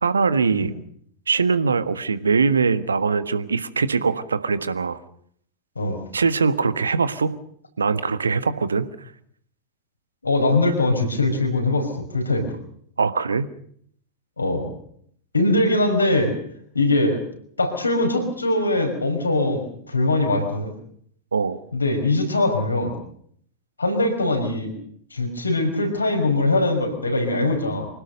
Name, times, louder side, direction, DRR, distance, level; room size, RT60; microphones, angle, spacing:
voice 1, 0.0-0.7 1.3-5.0 6.1-7.4 7.8-8.8 13.0-13.5 21.3-21.6, right 5 dB, 75° right, 14 dB, 1.4 m, -22 dB
voice 2, 10.2-12.5 14.4-14.6 15.3-16.3 16.7-17.2 17.6-20.7 21.7-22.9 23.8-24.7 25.1-27.9, left 2 dB, 80° left, 5 dB, 5.5 m, -22 dB
25.5 x 17.5 x 6.7 m, 0.64 s
figure-of-eight pair, 90°, 0 cm